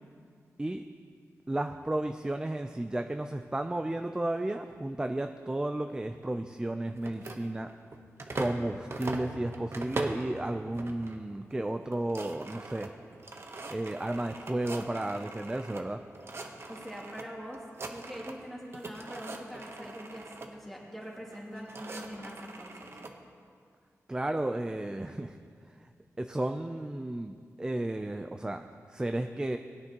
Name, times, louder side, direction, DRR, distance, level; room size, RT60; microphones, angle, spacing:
voice 1, 1.5-7.7 8.4-12.9 13.7-16.0 24.1-25.4 25.7-25.8 26.2-29.6, right 1 dB, 15° right, 7 dB, 0.4 m, -33 dB
sound 1, 7.0-8.6 8.9-10.3 10.7-11.2 11.5-11.6 11.8-15.8 16.1-17.2 17.5-18.5 18.7-20.5 21.3-23.1, right 3 dB, 50° right, 1.0 m, -41 dB
voice 2, 16.7-17.6 17.9-23.0, equal, 5° left, -4 dB, 2.6 m, -43 dB
19.5 x 9.5 x 3.0 m, 2.2 s
wide cardioid pair, 100°, 6 cm